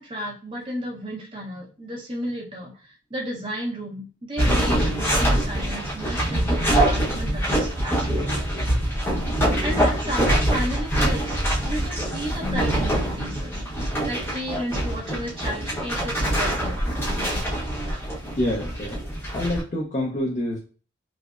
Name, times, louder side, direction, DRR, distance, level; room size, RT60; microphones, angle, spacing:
voice 1, 0.0-8.4 9.6-13.6 14.1-16.8, equal, 25° right, -2 dB, 0.8 m, -33 dB
sound 1, 4.4-19.6, right 1 dB, 10° left, 0.8 m, -24 dB
voice 2, 18.4-19.0 19.3-20.6, left 1 dB, 40° left, -3 dB, 0.5 m, -26 dB
4.7 x 2.0 x 2.4 m, 0.38 s
head